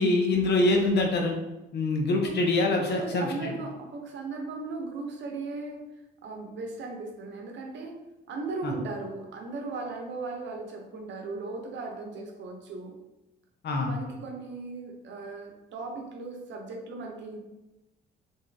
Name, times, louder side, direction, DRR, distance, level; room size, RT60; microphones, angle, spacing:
voice 1, 0.0-1.4 1.7-3.3 8.6-8.7 13.6-13.9, left 2 dB, 55° left, 2 dB, 0.7 m, -24 dB
voice 2, 2.8-5.8 6.2-7.9 8.3-12.9 13.8-17.4, right 3 dB, 65° right, 2 dB, 0.7 m, -37 dB
2.7 x 2.4 x 3.3 m, 0.97 s
cardioid pair, 90°, 20 cm